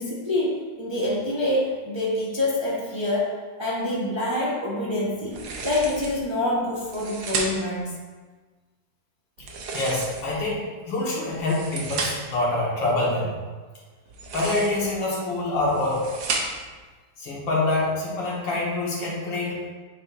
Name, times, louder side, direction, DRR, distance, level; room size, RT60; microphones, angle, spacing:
voice 1, 0.0-8.0, left 1 dB, 20° right, -6 dB, 0.8 m, -26 dB
sound 1, 5.3-6.2 6.8-7.8 9.4-10.5 11.3-12.4 14.1-14.9 15.5-16.8, right 3 dB, 80° right, 1.5 m, -33 dB
voice 2, 9.7-13.4 14.3-16.0 17.2-19.7, left 2 dB, 85° left, -5 dB, 2.2 m, -26 dB
8.4 x 4.9 x 2.5 m, 1.4 s
omnidirectional pair, 2.0 m